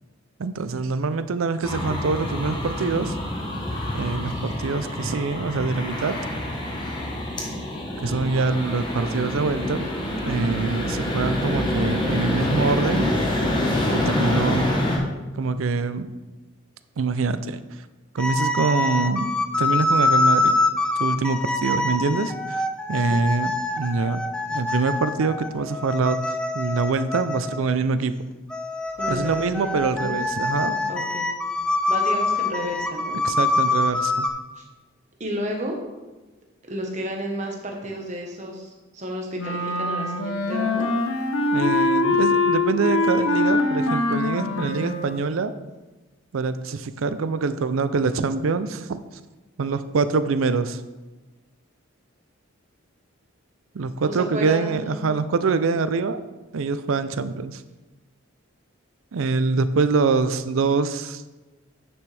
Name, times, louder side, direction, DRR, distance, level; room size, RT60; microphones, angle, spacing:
voice 1, 0.4-3.2 3.9-6.1 8.0-9.9 10.3-13.1 13.9-14.7 15.3-16.1 17.0-17.6 18.1-19.3 19.6-20.6 21.0-22.6 22.9-24.2 24.5-26.2 26.5-28.1 29.1-30.9 33.2-34.3 41.5-45.5 46.3-49.0 49.6-50.8 53.7-56.2 56.5-57.6 59.1-61.2, right 4 dB, 75° right, 12 dB, 0.5 m, -24 dB
sound 1, 1.6-15.0, left 1 dB, 20° left, 1.0 m, -26 dB
sound 2, 18.2-27.8 28.5-34.3, left 2 dB, 5° left, 0.4 m, -25 dB
voice 2, 28.9-30.2 30.9-31.3 31.9-33.2 34.6-34.7 35.2-35.8 36.7-40.9 54.0-55.1, equal, 35° right, 1 dB, 1.2 m, -32 dB
Wind instrument woodwind instrument, 39.4-45.3, left 2 dB, 85° left, 0.9 m, -23 dB
9.6 x 6.0 x 3.4 m, 1.1 s
head